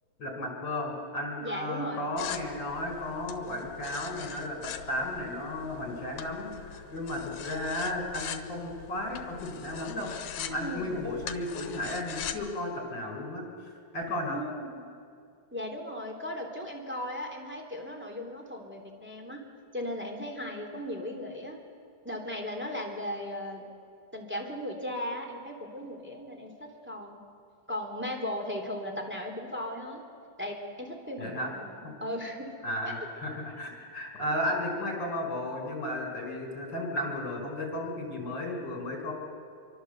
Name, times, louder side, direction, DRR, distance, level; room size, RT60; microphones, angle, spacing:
voice 1, 0.2-10.1 10.4-14.4 31.2-31.5 31.8-31.9 32.6-39.1, left 1 dB, 30° left, 1 dB, 5.6 m, -34 dB
voice 2, 1.4-2.1 10.6-10.9 14.3-14.9 15.5-19.4 19.7-21.6 22.0-23.7 24.1-27.2 27.7-30.0 30.4-32.5 32.8-32.9, left 1 dB, 5° right, 1 dB, 2.9 m, -37 dB
sound 1, 2.2-12.5, left 9 dB, 75° left, 2.7 m, -42 dB
26.5 x 24.5 x 8.1 m, 2.4 s
omnidirectional pair, 3.9 m